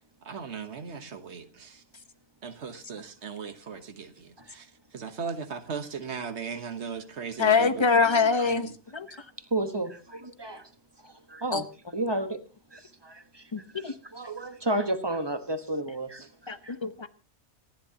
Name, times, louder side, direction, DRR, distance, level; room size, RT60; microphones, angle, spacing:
voice 1, 0.2-1.8 2.4-7.9 8.4-8.7, right 6 dB, 90° right, 1.5 m, -38 dB
voice 2, 7.4-9.1 11.5-11.6 13.5-13.9 16.5-17.1, left 5 dB, 25° left, 1.0 m, -24 dB
voice 3, 8.1-8.6 9.5-10.7 11.0-11.6 11.9-12.4 12.7-13.5 13.7-16.3 16.6-16.8, right 1 dB, 25° right, 1.3 m, -32 dB
26.0 x 11.5 x 2.9 m
omnidirectional pair, 1.1 m